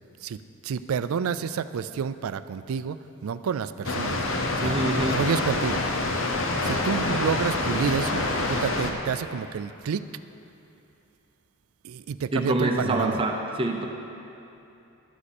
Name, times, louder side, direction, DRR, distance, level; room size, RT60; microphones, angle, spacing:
voice 1, 0.6-3.0 3.2-4.2 4.6-4.8 5.1-5.8 6.6-8.2 8.5-10.0 11.8-13.2, right 6 dB, 85° right, 13 dB, 0.4 m, -29 dB
Water, 3.8-8.9, left 2 dB, 70° left, 0.9 m, -26 dB
voice 2, 4.6-5.3 12.3-13.9, right 1 dB, 25° right, 2 dB, 0.6 m, -26 dB
12.0 x 9.9 x 4.3 m, 2.8 s
head